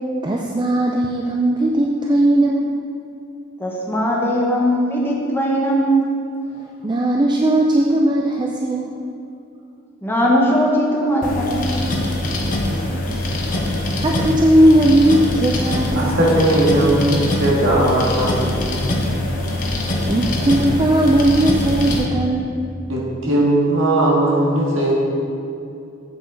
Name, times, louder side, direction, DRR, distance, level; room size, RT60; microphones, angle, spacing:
voice 1, 0.2-2.8 6.8-9.0 12.6-12.7 13.7-16.3 20.1-22.7, right 1 dB, 20° right, 0 dB, 0.4 m, -17 dB
voice 2, 3.6-6.1 10.0-11.9, equal, 10° left, -3 dB, 1.2 m, -19 dB
sound 1, 11.2-22.0, left 1 dB, 40° left, 1.1 m, -23 dB
voice 3, 16.0-18.8 22.9-24.9, right 1 dB, 75° right, -4 dB, 2.0 m, -18 dB
8.1 x 7.9 x 4.0 m, 2.6 s
head